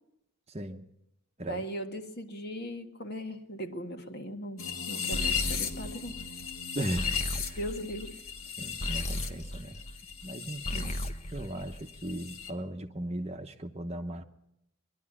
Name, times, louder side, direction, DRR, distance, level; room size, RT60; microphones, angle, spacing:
voice 1, 0.5-0.9 1.4-1.6 6.7-7.6 8.6-9.8 10.2-11.0 11.3-14.2, right 1 dB, 30° right, 6 dB, 1.0 m, -37 dB
voice 2, 1.5-4.6 4.9-6.1 7.6-8.2 10.7-11.0, equal, 45° left, 5 dB, 1.8 m, -38 dB
sound 1, 4.6-11.1 11.3-12.5, left 7 dB, 65° left, 1.9 m, -36 dB
sound 2, 5.1-10.3 10.6-12.3, equal, 30° left, 1.0 m, -37 dB
22.5 x 12.0 x 9.9 m, 0.85 s
head